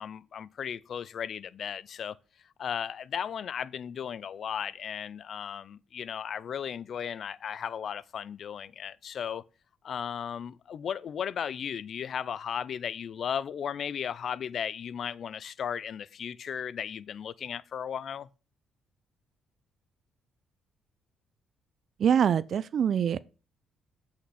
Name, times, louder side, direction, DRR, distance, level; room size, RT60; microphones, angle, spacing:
voice 1, 0.0-2.2 2.6-9.4 9.8-18.3, left 8 dB, 60° left, 0.4 m, -35 dB
voice 2, 22.0-23.2, right 8 dB, 60° right, 0.4 m, -24 dB
7.8 x 5.8 x 4.2 m
cardioid pair, 90°, 0 cm